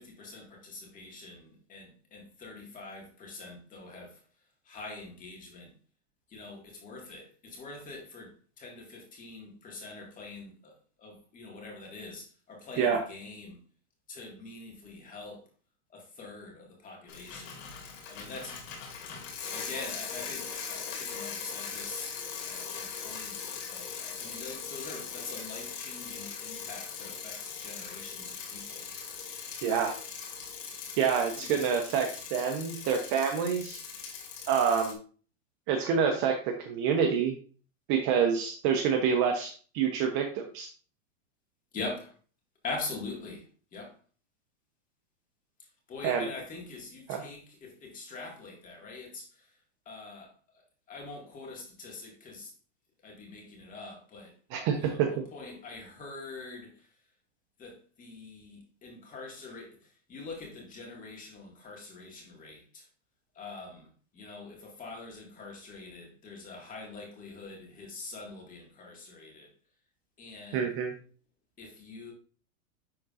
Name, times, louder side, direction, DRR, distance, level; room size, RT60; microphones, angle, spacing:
voice 1, 0.0-4.2 4.7-5.7 6.3-13.6 14.1-15.4 15.9-17.6 18.1-18.7 19.5-28.9 31.4-31.5 41.7-42.1 42.6-44.0 45.9-49.6 49.9-50.3 50.9-52.5 53.0-56.9 57.6-62.9 63.3-69.5 70.2-70.7 71.6-72.1, left 3 dB, 20° left, 1.9 m, -44 dB
Bicycle, 17.1-34.9, left 6 dB, 60° left, 2.6 m, -40 dB
voice 2, 29.6-30.0 31.0-33.8 34.5-35.0 35.7-37.4 37.9-40.7 46.0-46.3 47.1-47.2 54.5-55.1 70.5-70.9, right 7 dB, 30° right, 0.7 m, -27 dB
10.5 x 3.8 x 2.5 m
supercardioid pair, 150°, 41 cm